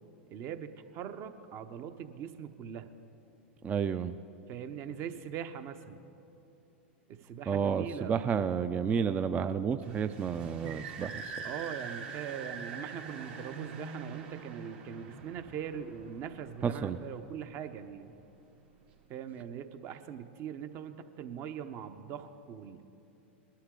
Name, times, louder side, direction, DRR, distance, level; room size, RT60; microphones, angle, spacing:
voice 1, 0.3-2.9 4.5-6.0 7.1-8.2 11.4-18.1 19.1-22.8, right 8 dB, 45° right, 9 dB, 0.8 m, -41 dB
voice 2, 3.6-4.1 7.5-11.3 16.6-17.0, right 7 dB, 25° right, 10 dB, 0.4 m, -31 dB
sound 1, 9.8-17.1, right 5 dB, 65° right, 1.9 m, -44 dB
20.5 x 11.5 x 3.8 m, 2.8 s
hypercardioid pair, 105°, 6 cm